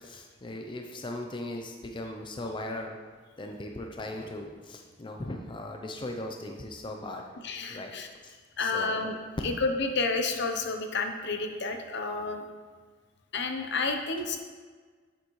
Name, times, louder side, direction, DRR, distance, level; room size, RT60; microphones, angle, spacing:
voice 1, 0.0-3.0 3.4-7.3 7.7-7.9 8.2-9.1, left 1 dB, 25° left, 2 dB, 0.5 m, -38 dB
voice 2, 7.4-8.1 8.6-9.2 9.4-12.4 13.3-14.4, left 3 dB, 60° left, 5 dB, 0.8 m, -30 dB
8.7 x 8.0 x 3.2 m, 1.5 s
head